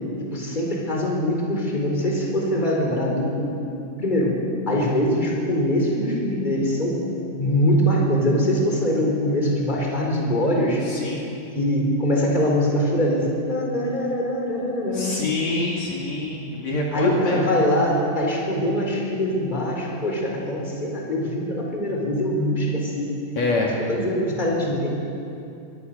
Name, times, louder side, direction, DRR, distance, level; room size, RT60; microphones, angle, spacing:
voice 1, 0.2-3.5 4.0-4.4 4.7-7.0 7.4-10.8 11.5-15.2 16.9-23.1 23.9-24.9, equal, 15° left, -1 dB, 4.4 m, -23 dB
voice 2, 10.8-11.3 14.9-17.5 23.4-23.8, left 2 dB, 60° left, -2 dB, 3.7 m, -26 dB
25.0 x 22.5 x 6.9 m, 2.6 s
omnidirectional pair, 3.7 m